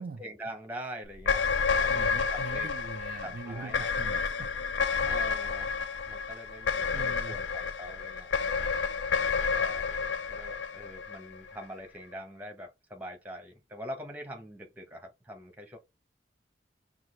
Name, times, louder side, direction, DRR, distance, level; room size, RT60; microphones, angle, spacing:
voice 1, 0.0-2.7 3.2-3.9 5.1-5.8 6.1-8.3 9.5-15.8, equal, 10° right, 0.9 m, -44 dB
sound 1, 1.1-11.6, left 5 dB, 85° left, 0.5 m, -30 dB
voice 2, 1.9-4.5 4.8-5.1 6.9-7.4, right 4 dB, 55° right, 0.4 m, -42 dB
5.8 x 2.5 x 3.2 m
head